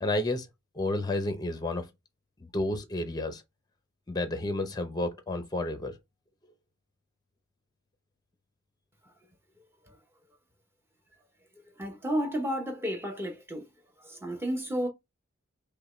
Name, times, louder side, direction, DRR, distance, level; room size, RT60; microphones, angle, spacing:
voice 1, 0.0-0.5 0.7-1.9 2.4-3.4 4.1-6.0, left 2 dB, 20° left, 0.6 m, -31 dB
voice 2, 11.8-13.7 14.0-14.9, equal, 10° right, 0.8 m, -32 dB
5.3 x 2.2 x 3.1 m
head